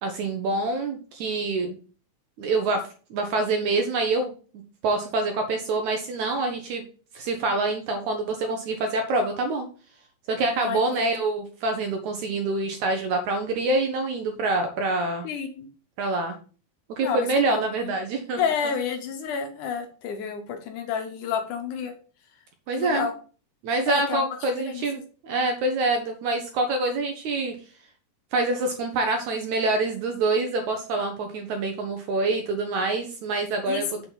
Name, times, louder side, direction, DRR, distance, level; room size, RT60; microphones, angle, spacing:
voice 1, 0.0-1.8 2.4-2.8 3.1-4.3 4.8-6.8 7.1-9.7 10.3-15.3 16.0-16.3 16.9-18.4 22.7-23.1 23.6-27.6 28.3-34.1, right 2 dB, 75° right, 5 dB, 1.7 m, -26 dB
voice 2, 10.6-11.3 15.2-15.7 17.0-17.9 18.4-21.9 22.8-23.1 23.9-24.3 24.6-24.8 33.7-33.8, left 6 dB, 70° left, 5 dB, 2.0 m, -30 dB
7.4 x 4.3 x 5.5 m, 0.38 s
omnidirectional pair, 4.4 m